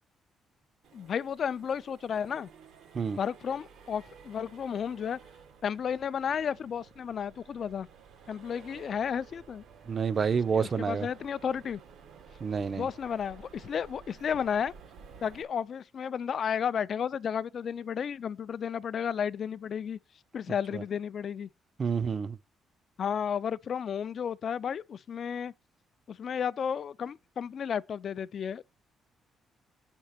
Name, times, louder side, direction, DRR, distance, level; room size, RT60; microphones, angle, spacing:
Accelerating revving vroom, 0.8-15.4, right 6 dB, 75° right, 1.3 m, -53 dB
voice 1, 0.9-2.5 3.2-5.2 5.6-7.9 8.3-9.6 10.5-11.8 12.8-14.7 15.2-20.0 20.3-21.5 23.0-25.5 26.1-28.6, left 7 dB, 55° left, 0.3 m, -33 dB
voice 2, 9.9-11.1 12.4-12.9 20.7-20.8 21.8-22.4, right 6 dB, 40° right, 0.6 m, -28 dB
6.4 x 4.5 x 6.5 m
cardioid pair, 90°, 0 cm